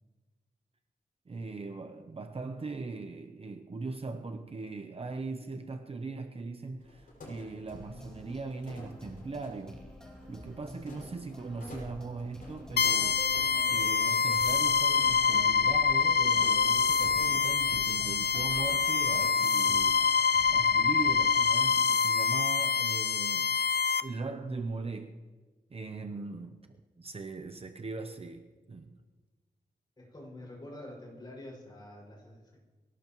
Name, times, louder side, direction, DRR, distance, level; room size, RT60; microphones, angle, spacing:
voice 1, 1.3-9.8 10.3-13.3 13.7-20.0 20.5-23.6 24.0-25.2 25.7-28.9, right 3 dB, 35° right, 0.8 m, -40 dB
sound 1, 6.8-19.3, left 1 dB, 60° left, 6.0 m, -51 dB
sound 2, 7.7-21.8, equal, 5° left, 2.6 m, -49 dB
sound 3, 12.8-24.0, left 6 dB, 75° left, 0.6 m, -26 dB
voice 2, 30.0-32.6, left 1 dB, 25° left, 6.1 m, -47 dB
23.5 x 17.5 x 3.1 m
wide cardioid pair, 155°, 17 cm